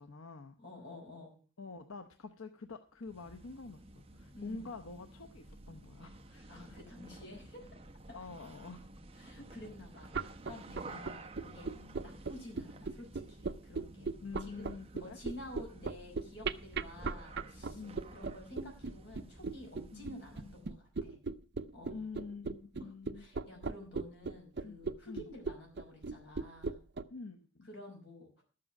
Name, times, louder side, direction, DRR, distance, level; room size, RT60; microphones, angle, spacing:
voice 1, 0.0-0.6 1.6-6.8 8.1-8.9 9.4-9.5 10.9-11.1 11.8-12.0 14.2-15.2 17.7-18.2 19.9-20.6 21.9-23.3 24.6-24.8 25.1-25.3 27.1-27.7, left 4 dB, 85° left, 6 dB, 0.8 m, -47 dB
voice 2, 0.6-1.4 4.3-4.7 6.5-7.7 8.1-8.2 9.2-14.1 14.4-14.6 15.0-17.8 18.1-21.2 21.7-22.1 22.7-22.9 23.1-26.8 27.6-28.4, left 1 dB, 55° left, 1 dB, 5.4 m, -51 dB
sound 1, 3.0-20.7, right 2 dB, 30° right, 0.8 m, -53 dB
sound 2, 10.0-27.0, right 4 dB, 55° right, 0.5 m, -37 dB
12.0 x 7.8 x 5.9 m, 0.38 s
head